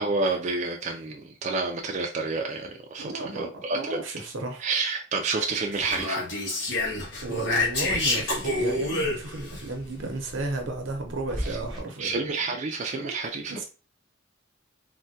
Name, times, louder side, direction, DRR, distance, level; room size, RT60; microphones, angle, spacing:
voice 1, 0.0-4.0 4.6-6.3 11.4-11.6 12.0-13.6, right 3 dB, 40° right, 1 dB, 0.4 m, -29 dB
voice 2, 3.0-4.7 7.2-12.2 12.9-13.2 13.5-13.7, right 2 dB, 85° right, 3 dB, 0.7 m, -34 dB
Speech, 5.7-9.6, left 2 dB, 65° left, 1.1 m, -28 dB
sound 1, 6.8-11.8, equal, ahead, 0.8 m, -41 dB
3.3 x 2.1 x 2.6 m, 0.32 s
head